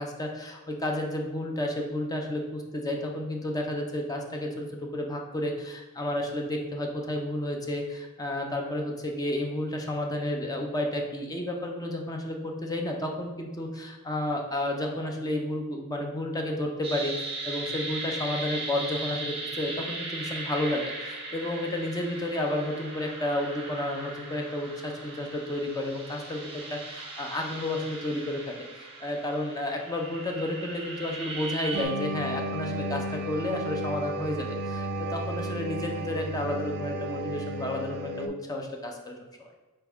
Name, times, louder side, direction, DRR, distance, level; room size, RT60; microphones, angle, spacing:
voice 1, 0.0-39.5, left 1 dB, 15° left, 2 dB, 0.5 m, -31 dB
sound 1, 16.8-31.8, right 2 dB, 25° right, 0.8 m, -38 dB
sound 2, 31.7-38.3, right 1 dB, 50° right, 0.3 m, -33 dB
4.3 x 3.5 x 3.5 m, 1.2 s
head